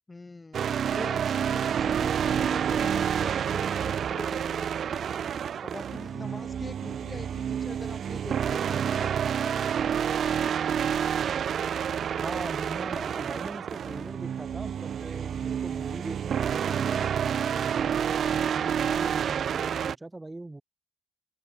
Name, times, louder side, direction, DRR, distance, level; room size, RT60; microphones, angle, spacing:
voice 1, 0.1-5.1 5.6-10.8, left 3 dB, 15° left, 2.0 m, -44 dB
sound 1, 0.5-19.9, right 8 dB, 40° right, 0.4 m, -29 dB
voice 2, 12.1-20.6, right 2 dB, 10° right, 3.3 m, -41 dB
open air
cardioid pair, 160°, 0 cm